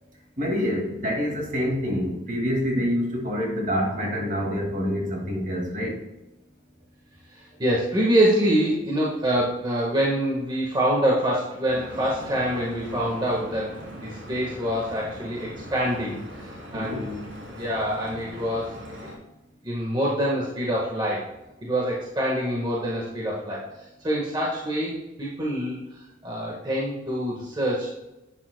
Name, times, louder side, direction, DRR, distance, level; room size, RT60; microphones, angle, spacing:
voice 1, 0.4-6.0 16.7-17.0, equal, 40° right, 0 dB, 2.1 m, -26 dB
voice 2, 7.3-13.7 14.0-16.2 16.7-17.2 17.6-19.1 19.6-21.3 21.6-23.6 24.0-25.8 26.2-27.9, equal, 20° right, -4 dB, 1.4 m, -25 dB
Stream / Boat Water vehicle, 11.7-19.1, equal, 75° right, 3.2 m, -40 dB
11.0 x 8.9 x 2.2 m, 0.97 s
head